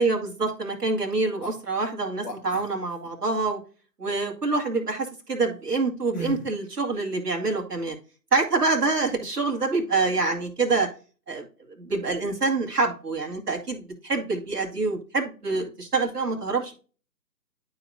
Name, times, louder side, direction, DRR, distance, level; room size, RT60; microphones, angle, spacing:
voice 1, 0.0-3.6 4.0-8.0 8.3-10.9 11.3-11.4 11.8-16.7, right 3 dB, 70° right, 0 dB, 2.4 m, -26 dB
sound 1, 1.4-1.6 2.2-3.1 6.1-6.6, equal, 15° left, 1.5 m, -35 dB
12.0 x 4.1 x 2.4 m, 0.38 s
figure-of-eight pair, 145°, 49 cm